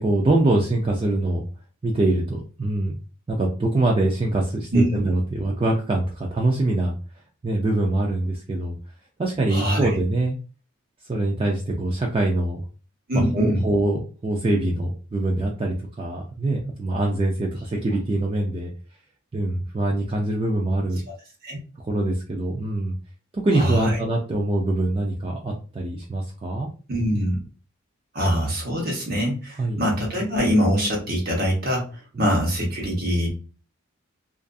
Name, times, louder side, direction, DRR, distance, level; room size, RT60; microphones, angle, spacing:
voice 1, 0.0-1.5 1.8-3.0 3.3-6.9 7.4-8.8 9.2-10.4 11.1-12.6 13.1-18.7 19.3-21.0 21.9-23.0 23.3-26.7 29.6-29.8 32.2-32.3, right 2 dB, 25° right, 0 dB, 0.3 m, -24 dB
voice 2, 9.5-9.9 13.1-13.6 21.4-21.6 23.5-24.0 26.9-27.4 28.1-31.9 32.2-33.3, equal, 45° right, -1 dB, 0.9 m, -23 dB
2.5 x 2.4 x 2.2 m, 0.35 s
head